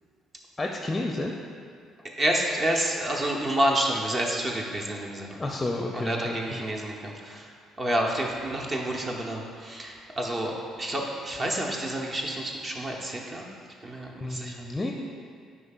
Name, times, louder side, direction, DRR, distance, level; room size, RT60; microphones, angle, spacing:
voice 1, 0.6-1.3 5.4-6.6 14.2-14.9, left 2 dB, 20° left, 1 dB, 0.5 m, -31 dB
voice 2, 2.2-5.4 5.9-13.4 13.8-14.6, right 1 dB, 35° right, -1 dB, 0.8 m, -29 dB
9.6 x 4.9 x 2.4 m, 2.2 s
figure-of-eight pair, 50°, 0 cm